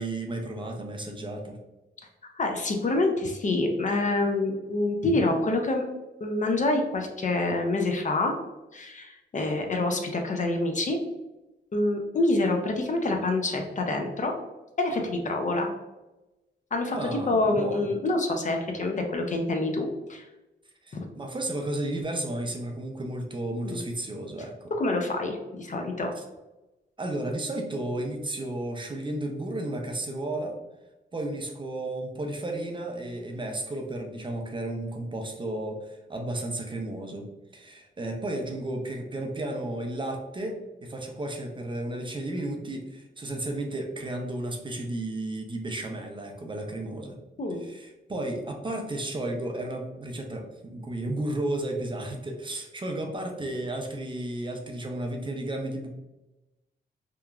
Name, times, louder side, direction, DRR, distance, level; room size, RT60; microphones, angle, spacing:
voice 1, 0.0-1.6 16.9-17.9 20.8-24.7 26.2-26.3 27.0-30.6 31.1-37.2 37.5-47.2 47.6-55.9, right 1 dB, 25° right, 2 dB, 0.4 m, -33 dB
voice 2, 2.4-5.9 6.2-8.3 8.7-11.0 11.7-14.3 14.8-15.7 16.7-20.2 23.6-23.8 24.8-26.1 47.4-47.6, left 2 dB, 40° left, 3 dB, 0.4 m, -26 dB
2.9 x 2.3 x 2.2 m, 1.0 s
wide cardioid pair, 100°, 19 cm